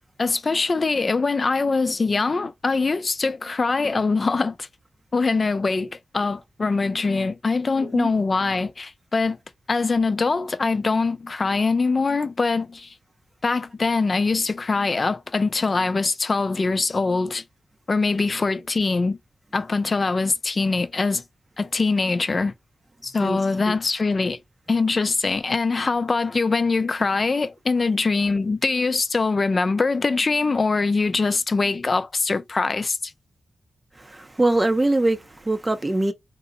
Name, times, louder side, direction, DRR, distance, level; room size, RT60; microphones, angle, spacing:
voice 1, 0.2-4.7 5.1-9.4 9.7-12.9 13.4-17.4 17.9-19.2 19.5-21.2 21.6-22.5 23.0-24.4 24.7-33.1, left 4 dB, 45° left, 0.5 m, -23 dB
voice 2, 23.2-23.7 34.0-36.1, right 2 dB, 25° right, 0.6 m, -23 dB
3.8 x 2.0 x 3.8 m
cardioid pair, 75°, 0 cm